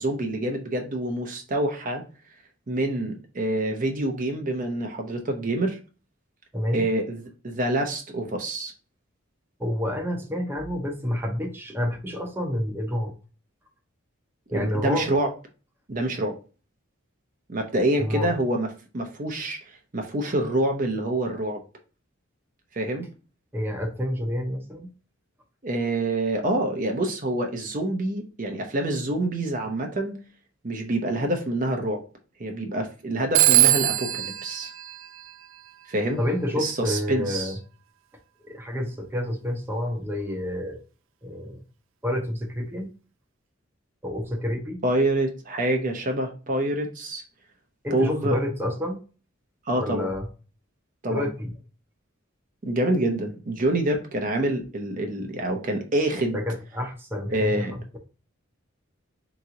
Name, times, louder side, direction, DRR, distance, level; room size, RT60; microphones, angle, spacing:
voice 1, 0.0-2.0 2.7-5.8 6.7-8.7 14.5-15.3 15.9-16.4 17.5-18.7 18.9-19.6 19.9-21.6 22.7-23.1 25.6-30.2 30.6-32.0 32.4-34.7 35.9-36.2 36.6-37.5 44.8-47.2 47.9-48.4 49.7-50.1 51.0-51.3 52.7-56.4 57.3-57.7, right 1 dB, 40° right, 3 dB, 0.7 m, -26 dB
voice 2, 6.5-6.9 9.6-13.1 14.5-15.1 18.0-18.3 23.5-24.9 36.2-37.6 38.4-40.8 41.2-41.6 42.0-42.9 44.0-44.8 47.8-49.0 49.7-50.3 51.1-51.5 56.3-58.0, left 1 dB, 10° right, 1 dB, 0.8 m, -29 dB
Telephone, 33.3-35.8, right 15 dB, 70° right, 0.4 m, -22 dB
3.9 x 3.0 x 3.7 m, 0.35 s
head